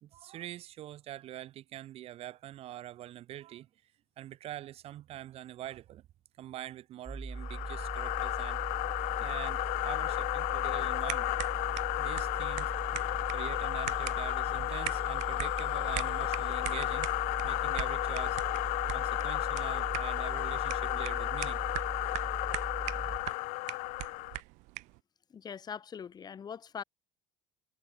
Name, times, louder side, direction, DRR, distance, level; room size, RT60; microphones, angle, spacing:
voice 1, 0.0-3.7 4.2-6.1 6.4-8.6 9.2-11.3 12.0-12.7 13.3-17.1 17.4-18.4 18.9-21.6 22.9-23.6, right 13 dB, 55° right, 2.4 m, -45 dB
sound 1, 7.1-23.2, right 3 dB, 10° right, 0.7 m, -40 dB
sound 2, 7.4-24.4, left 26 dB, 75° left, 0.8 m, -33 dB
sound 3, 11.1-25.0, right 25 dB, 75° right, 3.6 m, -43 dB
voice 2, 25.3-26.8, left 7 dB, 35° left, 3.9 m, -42 dB
cardioid pair, 120°, 12 cm